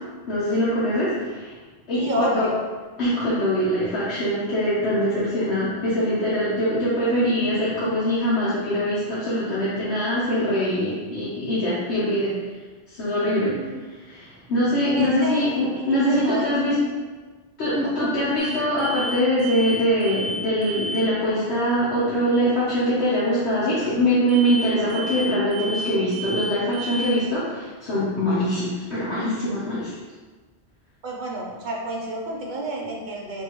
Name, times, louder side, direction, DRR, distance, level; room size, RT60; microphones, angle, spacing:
voice 1, 0.3-1.6 1.9-2.5 3.0-12.3 12.9-13.5 13.9-16.8 17.6-29.9, equal, 80° left, -10 dB, 1.2 m, -23 dB
voice 2, 1.9-2.6 13.4-13.8 14.8-16.6 17.8-18.1 31.0-33.4, right 1 dB, 50° right, -1 dB, 0.7 m, -30 dB
sound 1, 18.4-18.5 18.8-19.1 19.4-19.7 20.0-20.4 20.6-21.0 24.3-24.6 24.9-25.2 25.5-25.9 26.1-26.5 26.7-27.1, right 1 dB, 75° right, 1.0 m, -31 dB
3.8 x 3.5 x 2.9 m, 1.4 s
omnidirectional pair, 1.1 m